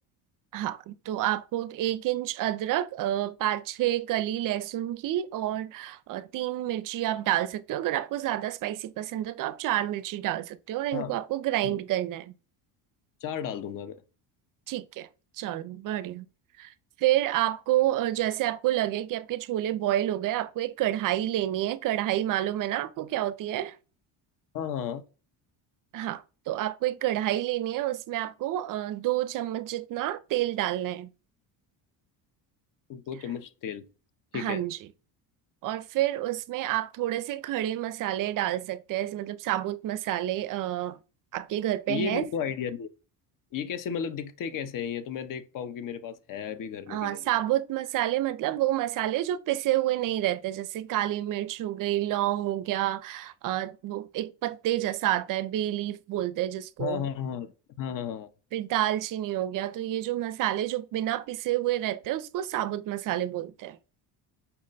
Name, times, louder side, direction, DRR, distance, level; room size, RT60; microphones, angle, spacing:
voice 1, 0.5-12.3 14.7-15.1 15.4-16.3 16.6-23.8 25.9-31.1 34.3-34.8 35.6-41.0 41.3-42.3 46.9-57.0 58.5-63.8, right 13 dB, 50° right, 0.4 m, -29 dB
voice 2, 13.2-14.0 24.5-25.0 32.9-33.9 34.3-34.6 41.9-42.9 43.5-47.2 56.8-57.5 57.8-58.3, left 8 dB, 50° left, 0.6 m, -33 dB
5.6 x 2.1 x 3.9 m
cardioid pair, 105°, 44 cm